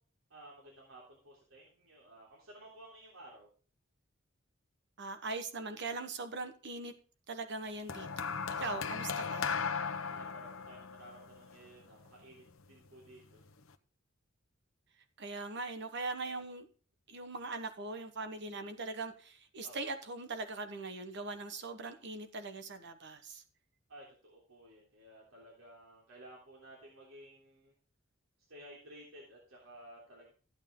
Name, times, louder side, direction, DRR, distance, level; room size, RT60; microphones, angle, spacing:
voice 1, 0.3-3.5 10.0-13.4 19.6-19.8 23.9-27.7 28.5-30.3, right 1 dB, 85° right, -3 dB, 3.5 m, -55 dB
voice 2, 5.0-6.9 7.3-8.3 8.6-9.5 15.2-16.7 17.1-23.4, right 3 dB, 60° right, 8 dB, 1.1 m, -41 dB
sound 1, 7.9-12.3 13.2-13.5, left 6 dB, 80° left, 0.9 m, -37 dB
14.0 x 9.0 x 3.7 m, 0.40 s
head